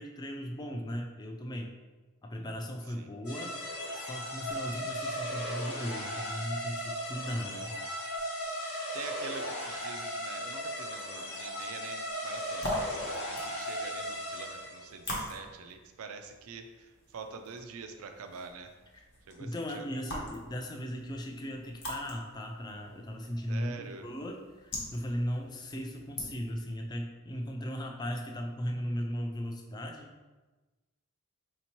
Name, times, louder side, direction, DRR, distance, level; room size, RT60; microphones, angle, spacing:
voice 1, 0.0-1.7 2.2-3.6 3.9-7.7 18.9-19.0 19.4-30.1, equal, 20° left, 3 dB, 0.3 m, -37 dB
sound 1, 3.2-14.9, equal, 85° left, 1.1 m, -37 dB
voice 2, 4.6-4.9 8.9-18.7 19.3-19.5 19.7-19.9 23.5-24.1, right 5 dB, 80° right, 7 dB, 0.4 m, -46 dB
sound 2, 12.3-26.7, left 1 dB, 55° left, 0.9 m, -43 dB
4.3 x 2.8 x 2.9 m, 1.2 s
head